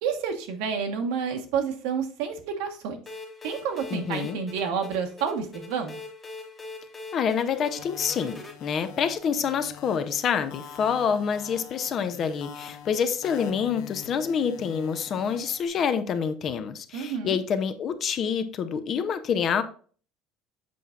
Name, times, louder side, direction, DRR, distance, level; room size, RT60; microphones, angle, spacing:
voice 1, 0.0-3.0 3.4-6.0 16.9-17.4, right 6 dB, 85° right, 1.2 m, -29 dB
sound 1, 3.1-8.5, left 3 dB, 15° left, 1.1 m, -42 dB
voice 2, 3.9-4.4 7.1-19.6, left 7 dB, 35° left, 0.5 m, -27 dB
sound 2, 7.5-15.7, left 8 dB, 75° left, 0.8 m, -45 dB
7.6 x 5.5 x 2.4 m
cardioid pair, 170°, 0 cm